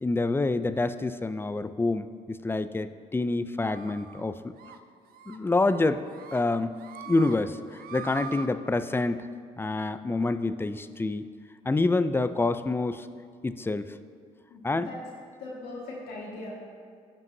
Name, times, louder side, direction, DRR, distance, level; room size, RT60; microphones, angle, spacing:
voice 1, 0.0-4.5 5.3-6.0 6.3-6.8 7.1-7.6 7.9-9.3 9.6-11.2 11.7-13.1 13.4-13.9 14.6-14.9, left 2 dB, 15° left, 12 dB, 0.4 m, -27 dB
sound 1, 3.6-4.2 4.6-4.8 5.1-5.4 5.7-6.4 6.7-7.3 7.7-8.5, right 8 dB, 60° right, 0.6 m, -43 dB
voice 2, 14.5-15.0 15.4-16.5, left 2 dB, 75° left, -4 dB, 1.7 m, -40 dB
14.0 x 5.3 x 2.7 m, 2.1 s
supercardioid pair, 60°, 17 cm